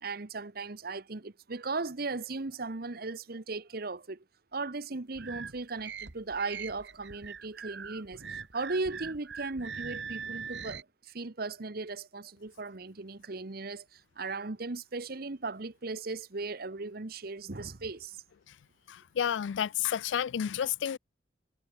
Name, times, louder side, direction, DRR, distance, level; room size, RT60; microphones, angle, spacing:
voice 1, 0.0-4.2 4.5-18.2, right 3 dB, 55° right, 1.1 m, -37 dB
sound 1, 5.1-10.8, right 6 dB, 70° right, 1.8 m, -42 dB
voice 2, 18.9-21.0, left 9 dB, 80° left, 0.4 m, -31 dB
head